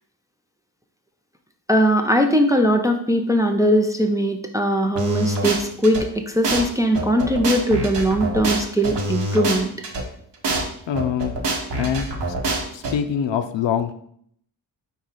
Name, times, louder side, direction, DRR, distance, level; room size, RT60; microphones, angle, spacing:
voice 1, 1.7-9.7, equal, 10° right, 4 dB, 0.4 m, -20 dB
sound 1, 5.0-6.0 6.4-6.6 6.9-10.0 10.4-10.6 10.9-12.9, right 2 dB, 60° right, 1.1 m, -25 dB
voice 2, 10.9-11.4 11.7-12.1 12.7-13.9, left 8 dB, 65° left, 9 dB, 0.5 m, -24 dB
4.8 x 2.7 x 4.0 m, 0.66 s
cardioid pair, 55°, 48 cm